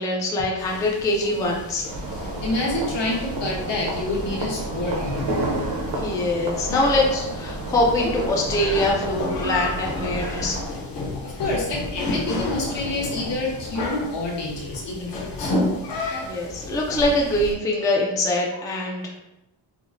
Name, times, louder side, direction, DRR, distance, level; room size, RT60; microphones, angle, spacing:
voice 1, 0.0-1.9 6.0-10.6 16.2-19.2, left 1 dB, 10° left, -2 dB, 0.3 m, -23 dB
sound 1, 0.6-17.5, left 2 dB, 50° left, 0.8 m, -32 dB
sound 2, 1.9-10.7, right 1 dB, 65° right, 0.8 m, -30 dB
voice 2, 2.4-5.4 11.2-15.5 16.0-16.2, left 2 dB, 70° left, -3 dB, 1.1 m, -28 dB
4.8 x 2.0 x 2.5 m, 0.94 s
cardioid pair, 145°, 45 cm